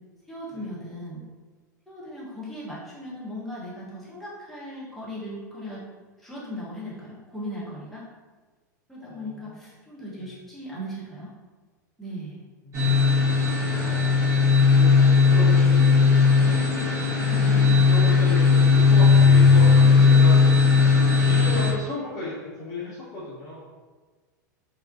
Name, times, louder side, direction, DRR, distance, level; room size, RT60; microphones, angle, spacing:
voice 1, 0.3-1.2 1.9-5.8 6.2-8.1 8.9-11.3 12.0-12.4 16.3-16.5 17.2-17.8 18.1-18.2 19.8-20.1, equal, ahead, -9 dB, 0.9 m, -37 dB
voice 2, 9.0-9.6 10.2-10.3 12.6-12.8 13.3-14.1 14.5-16.0 16.4-16.6 17.5-23.6, left 2 dB, 30° left, -10 dB, 0.7 m, -36 dB
sound 1, 12.7-21.7, left 4 dB, 35° right, 1.0 m, -17 dB
2.3 x 2.1 x 2.5 m, 1.4 s
hypercardioid pair, 95°, 10 cm